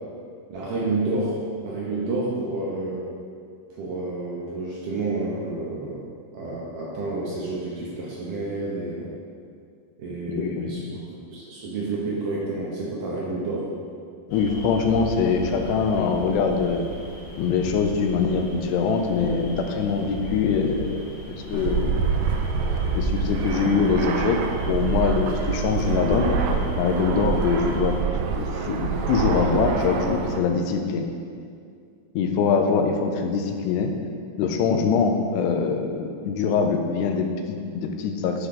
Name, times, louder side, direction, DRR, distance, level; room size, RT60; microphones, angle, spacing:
voice 1, 0.5-1.4 1.6-3.0 3.8-6.0 6.3-9.1 10.0-10.8 11.3-13.7, right 2 dB, 70° right, -5 dB, 2.1 m, -29 dB
voice 2, 10.4-10.9 14.3-16.8 17.4-22.4 23.0-24.4 24.7-26.4 26.8-28.0 28.3-31.1 32.2-33.9 34.4-38.5, left 5 dB, 90° left, 4 dB, 2.8 m, -23 dB
sound 1, 14.3-28.0, left 2 dB, 60° left, 1.9 m, -36 dB
Fixed-wing aircraft airplane, 21.5-30.4, right 5 dB, 85° right, 2.8 m, -26 dB
9.9 x 6.4 x 3.8 m, 2.3 s
omnidirectional pair, 4.8 m